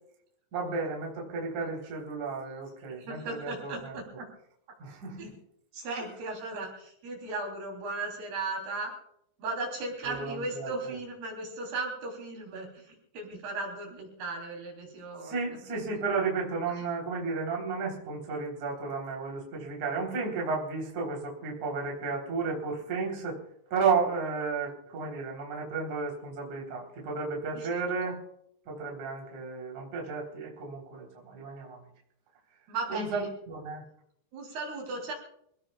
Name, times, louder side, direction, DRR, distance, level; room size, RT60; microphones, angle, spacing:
voice 1, 0.5-3.9 4.8-5.3 10.0-11.0 14.9-23.4 23.7-28.2 28.7-31.9 32.9-33.8, right 4 dB, 45° right, -1 dB, 4.7 m, -33 dB
voice 2, 3.0-4.3 5.2-5.3 5.7-8.9 9.4-15.4 27.5-28.2 32.7-33.3 34.3-35.1, right 3 dB, 60° right, 1 dB, 5.3 m, -36 dB
28.0 x 17.5 x 2.4 m, 0.72 s
omnidirectional pair, 5.3 m